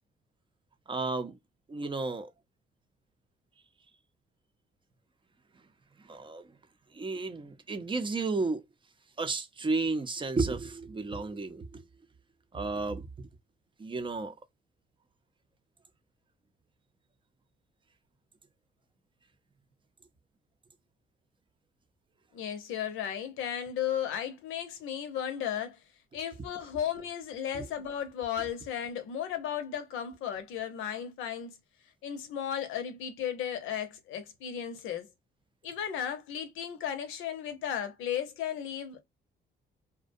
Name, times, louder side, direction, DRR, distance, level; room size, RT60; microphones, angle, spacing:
voice 1, 0.9-1.3 1.7-2.3 6.1-6.4 6.9-8.6 9.2-11.8 12.5-13.3 13.8-14.3 27.5-27.6, right 3 dB, 25° right, 0.5 m, -32 dB
voice 2, 22.3-25.8 26.1-31.6 32.0-35.1 35.6-39.0, left 9 dB, 90° left, 0.7 m, -35 dB
2.4 x 2.2 x 2.5 m
cardioid pair, 90°, 20 cm